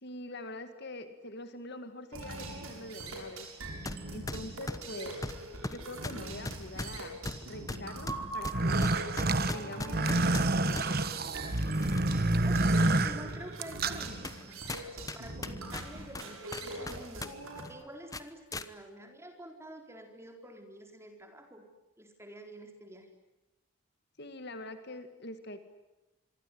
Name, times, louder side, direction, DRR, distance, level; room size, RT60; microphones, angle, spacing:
voice 1, 0.0-3.5 4.1-5.2 5.7-7.2 7.5-8.8 9.5-11.0 24.2-25.6, left 1 dB, 50° left, 9 dB, 2.1 m, -44 dB
sound 1, 2.1-17.6, right 2 dB, 80° right, 7.5 m, -42 dB
sound 2, 3.9-4.0 4.3-10.9 11.5-12.3 12.7-12.8 13.5-13.6 14.2-14.4 14.7-17.3 17.6-17.7 18.1-18.7, left 2 dB, 15° left, 1.1 m, -39 dB
sound 3, 8.4-14.1, right 2 dB, 45° right, 1.4 m, -28 dB
voice 2, 12.4-21.7 22.0-23.1, right 1 dB, 10° right, 4 dB, 4.3 m, -49 dB
26.0 x 24.0 x 9.5 m, 1.0 s
head